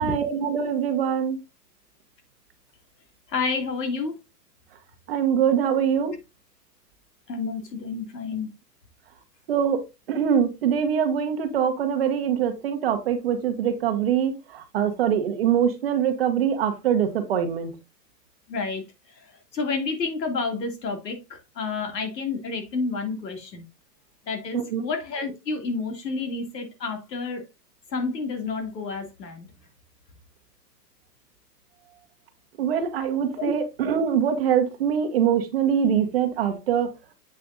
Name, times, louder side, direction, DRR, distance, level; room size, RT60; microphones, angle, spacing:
voice 1, 0.0-1.4 5.1-6.1 9.5-17.7 24.5-24.8 32.6-36.9, right 8 dB, 40° right, 7 dB, 1.1 m, -23 dB
voice 2, 3.3-4.2 7.3-8.5 18.5-18.8 19.5-23.6 24.3-27.4 27.9-29.5 33.3-33.5, left 4 dB, 90° left, 5 dB, 2.8 m, -30 dB
7.7 x 6.5 x 2.6 m, 0.23 s
hypercardioid pair, 170°, 48 cm